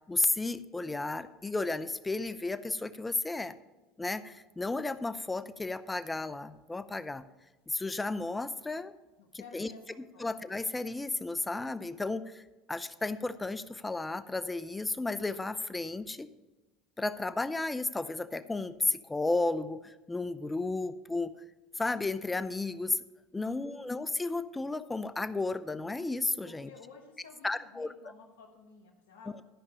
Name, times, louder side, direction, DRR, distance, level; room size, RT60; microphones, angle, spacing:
voice 1, 0.1-3.5 4.0-7.2 7.7-8.9 9.3-9.7 10.2-12.4 12.7-16.3 17.0-21.3 21.8-23.0 23.3-26.7 27.4-27.9, left 2 dB, 15° left, 14 dB, 0.6 m, -33 dB
voice 2, 9.2-9.8 10.1-10.3 23.4-23.8 26.4-29.4, left 5 dB, 75° left, -1 dB, 1.3 m, -53 dB
12.5 x 5.4 x 6.7 m, 1.1 s
hypercardioid pair, 85°, 0 cm